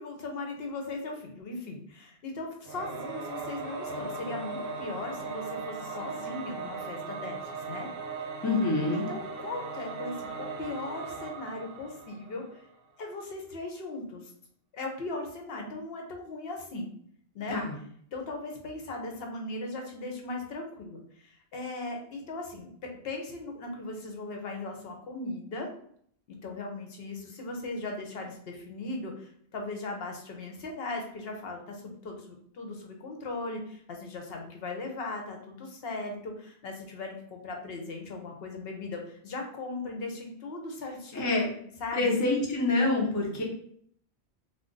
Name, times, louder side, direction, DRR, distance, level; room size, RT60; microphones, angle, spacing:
voice 1, 0.0-7.9 8.9-12.6 13.0-14.3 14.7-16.9 17.3-17.6 18.1-25.7 26.4-41.5 41.8-42.2, left 2 dB, 65° left, 2 dB, 0.8 m, -38 dB
Singing / Musical instrument, 2.7-12.7, right 4 dB, 65° right, 0.7 m, -38 dB
voice 2, 8.4-9.1 17.5-17.7 41.1-41.5 41.9-43.4, left 2 dB, 20° left, -2 dB, 0.5 m, -26 dB
2.4 x 2.2 x 3.7 m, 0.63 s
omnidirectional pair, 1.1 m